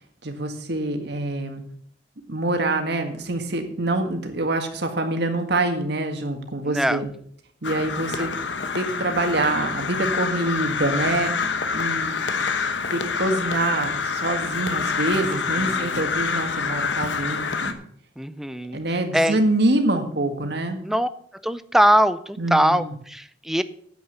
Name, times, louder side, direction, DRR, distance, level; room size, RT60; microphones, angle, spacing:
voice 1, 0.2-1.6 2.3-7.1 7.6-8.3 8.7-12.3 12.9-17.7 18.7-20.8 22.4-22.9, right 2 dB, 65° right, 5 dB, 1.8 m, -25 dB
voice 2, 6.7-7.0 8.1-8.3 15.2-16.1 18.2-18.8 19.1-19.4 20.8-21.1 21.4-23.6, equal, ahead, 13 dB, 0.5 m, -22 dB
Crow, 7.6-17.7, left 5 dB, 90° left, 1.1 m, -27 dB
9.6 x 8.1 x 6.8 m, 0.62 s
head